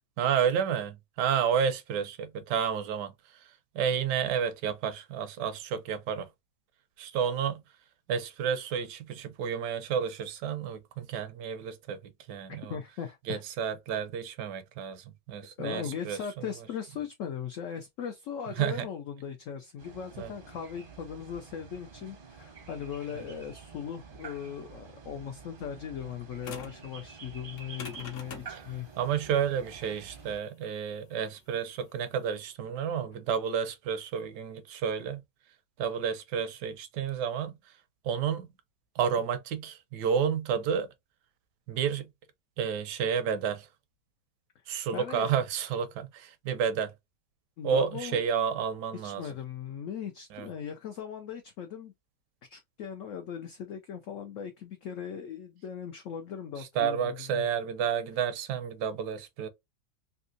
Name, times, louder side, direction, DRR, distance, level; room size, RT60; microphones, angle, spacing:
voice 1, 0.2-3.1 3.7-6.3 7.0-7.6 8.1-12.0 12.3-12.7 13.3-16.2 18.6-18.8 20.2-20.3 23.1-23.2 28.5-28.6 29.0-35.2 35.8-37.5 38.0-38.5 39.0-40.9 41.7-42.1 42.6-43.7 44.7-46.9 47.6-49.2 50.3-50.5 56.8-59.5, right 7 dB, 80° right, 1.2 m, -30 dB
voice 2, 12.5-13.4 13.9-14.0 15.6-28.9 44.9-45.3 47.6-48.2 48.9-51.9 52.5-57.5, left 8 dB, 75° left, 0.7 m, -39 dB
sound 1, 19.8-30.4, right 6 dB, 45° right, 0.7 m, -48 dB
sound 2, 26.4-26.9 27.5-32.5, left 5 dB, 55° left, 1.0 m, -45 dB
3.4 x 2.7 x 2.5 m
omnidirectional pair, 1.9 m